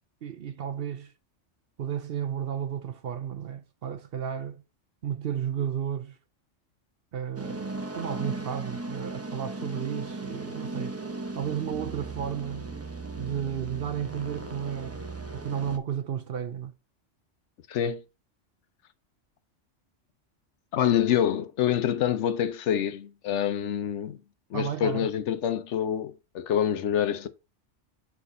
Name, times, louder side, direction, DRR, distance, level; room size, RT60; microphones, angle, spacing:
voice 1, 0.2-1.1 1.8-4.6 5.0-6.2 7.1-11.0 11.4-12.7 13.2-15.1 15.3-16.7 24.5-25.1, right 9 dB, 60° right, 0.7 m, -33 dB
sound 1, 7.4-15.8, right 2 dB, 15° right, 0.5 m, -37 dB
voice 2, 17.7-18.0 20.7-24.2 24.5-27.3, left 9 dB, 70° left, 1.0 m, -26 dB
4.7 x 4.5 x 5.2 m
omnidirectional pair, 1.3 m